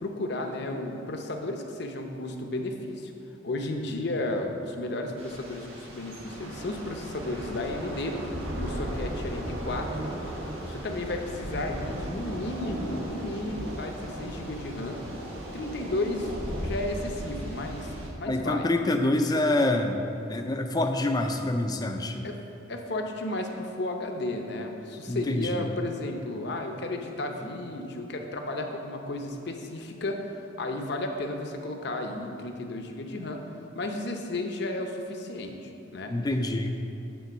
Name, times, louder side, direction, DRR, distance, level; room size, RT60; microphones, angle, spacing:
voice 1, 0.0-3.1 3.4-8.2 8.6-10.1 10.6-15.0 15.5-19.0 22.2-22.4 22.7-33.4 33.7-36.1, left 2 dB, 55° left, 4 dB, 0.7 m, -33 dB
Thunder / Rain, 5.2-18.1, equal, 80° right, 1.4 m, -36 dB
voice 2, 18.3-20.0 20.3-22.2 25.1-25.6 36.1-36.7, left 2 dB, 20° left, 5 dB, 0.4 m, -26 dB
9.3 x 3.8 x 6.0 m, 2.8 s
head